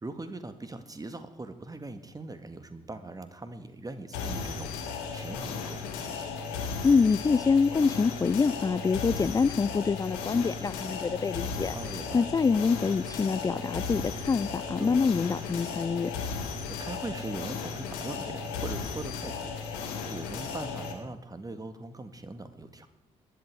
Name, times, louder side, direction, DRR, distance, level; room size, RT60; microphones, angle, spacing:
voice 1, 0.0-6.3 11.7-12.3 14.8-15.0 16.7-22.9, right 2 dB, 25° right, 9 dB, 1.9 m, -41 dB
sound 1, 4.1-20.9, left 5 dB, 75° left, 1.8 m, -35 dB
voice 2, 6.8-11.7 12.1-16.1, left 5 dB, 20° left, 16 dB, 0.4 m, -25 dB
21.0 x 11.0 x 4.8 m, 0.88 s
figure-of-eight pair, 45°, 16 cm